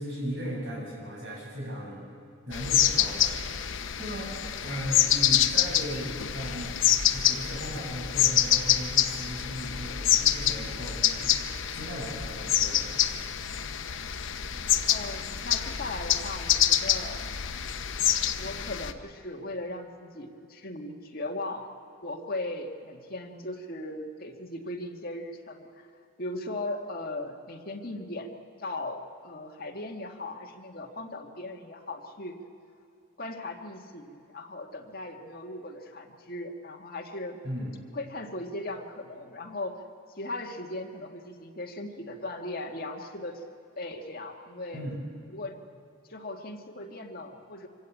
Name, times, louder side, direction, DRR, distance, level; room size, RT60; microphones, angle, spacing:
voice 1, 0.0-2.1 2.5-3.3 3.6-4.3 4.6-11.4 11.7-12.9 37.4-37.8 44.7-45.0, equal, 55° right, -4 dB, 7.9 m, -37 dB
sound 1, 2.5-18.9, left 10 dB, 65° left, 0.8 m, -26 dB
voice 2, 14.9-17.2 18.3-21.7 22.0-25.9 26.2-28.3 28.6-32.4 33.2-37.4 37.9-39.7 40.2-43.4 43.8-44.9 45.3-45.5 46.1-47.7, left 2 dB, 45° left, 2 dB, 1.9 m, -38 dB
25.0 x 16.5 x 8.5 m, 2.5 s
head